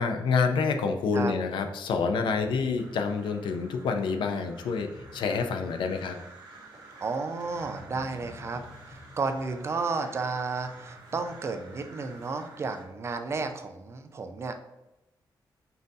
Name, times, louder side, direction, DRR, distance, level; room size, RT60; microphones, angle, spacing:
voice 1, 0.0-6.2, left 5 dB, 90° left, 6 dB, 0.5 m, -28 dB
voice 2, 2.5-2.9 7.0-14.6, right 4 dB, 35° right, 7 dB, 0.3 m, -33 dB
Crow, 2.8-12.8, right 3 dB, 90° right, 1.1 m, -50 dB
sound 1, 4.7-9.9 10.7-12.0, left 1 dB, 45° left, 0.6 m, -50 dB
5.4 x 2.6 x 2.6 m, 0.95 s
wide cardioid pair, 150°, 8 cm